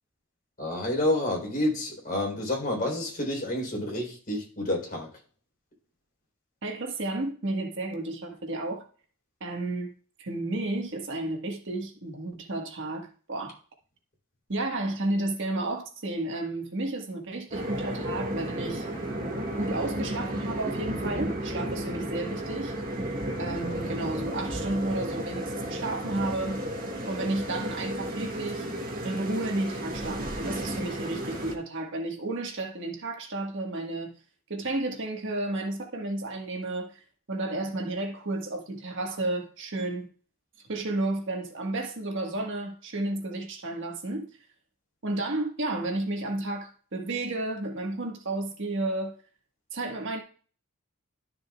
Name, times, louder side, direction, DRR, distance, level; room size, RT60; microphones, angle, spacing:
voice 1, 0.6-5.1, left 1 dB, 40° left, 3.7 m, -29 dB
voice 2, 6.6-8.9 9.4-13.6 14.5-18.9 19.6-22.7 23.4-26.6 27.1-28.7 29.0-34.1 34.5-37.0 37.3-40.1 40.7-44.3 45.0-49.1 49.7-50.2, right 2 dB, 55° right, 1.5 m, -32 dB
sound 1, 17.5-31.5, right 1 dB, 40° right, 1.8 m, -33 dB
12.5 x 6.6 x 2.4 m
head